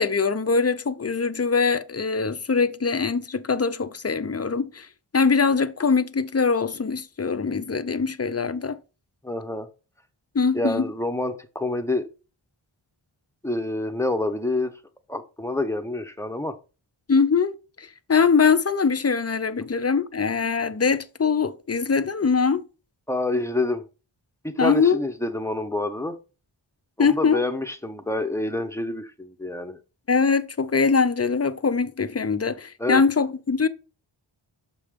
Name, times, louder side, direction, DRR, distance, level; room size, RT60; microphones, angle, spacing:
voice 1, 0.0-4.9 5.1-8.8 10.3-10.9 17.1-22.6 24.6-25.0 27.0-27.4 30.1-33.7, left 5 dB, 30° left, 0.5 m, -22 dB
voice 2, 9.2-9.7 10.5-12.1 13.4-14.8 15.1-16.5 23.1-23.8 24.4-26.2 27.0-29.8 32.8-33.0, left 2 dB, 5° left, 0.8 m, -27 dB
6.7 x 5.0 x 3.6 m
wide cardioid pair, 60°, 49 cm